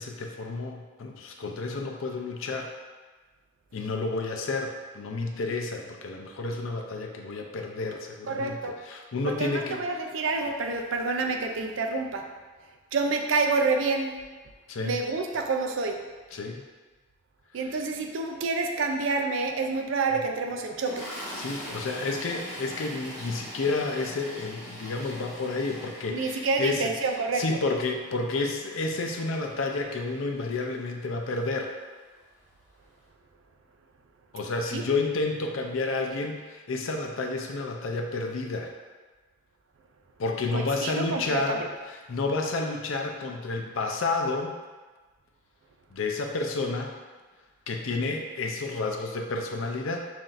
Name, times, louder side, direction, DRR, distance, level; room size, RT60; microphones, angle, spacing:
voice 1, 0.0-2.7 3.7-10.0 14.7-15.0 16.3-16.6 17.6-17.7 21.4-26.9 27.3-31.7 34.3-38.7 40.2-41.6 42.1-44.6 45.9-46.9 47.7-50.0, left 3 dB, 75° left, 3 dB, 0.5 m, -30 dB
voice 2, 8.3-8.7 9.4-12.2 12.9-14.2 14.8-16.0 17.5-21.1 26.1-27.4 34.7-34.8 40.5-41.7, right 3 dB, 70° right, 3 dB, 0.4 m, -28 dB
Toilet flush, 20.7-31.0 32.0-32.2 32.4-32.6, equal, ahead, 1.2 m, -43 dB
5.6 x 2.6 x 2.5 m, 1.3 s
head